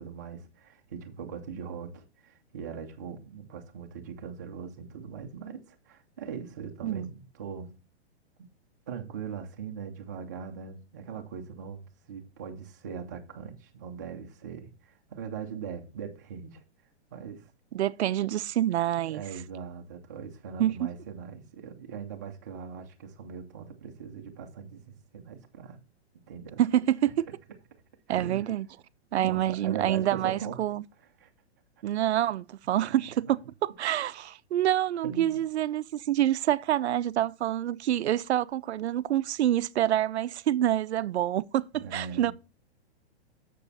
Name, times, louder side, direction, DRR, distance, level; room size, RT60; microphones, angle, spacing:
voice 1, 0.0-7.7 8.4-8.5 8.9-16.6 17.1-17.5 19.1-25.8 26.3-26.6 28.1-28.5 29.2-30.6 31.2-31.3 32.8-32.9 33.2-33.3 35.0-35.4 41.7-42.3, right 6 dB, 15° right, 0.5 m, -40 dB
voice 2, 17.7-19.2 20.6-20.8 26.6-27.1 28.1-28.7 29.1-30.8 31.8-33.4 33.8-42.3, right 12 dB, 75° right, 0.5 m, -27 dB
7.0 x 6.8 x 4.0 m
hypercardioid pair, 180°, 33 cm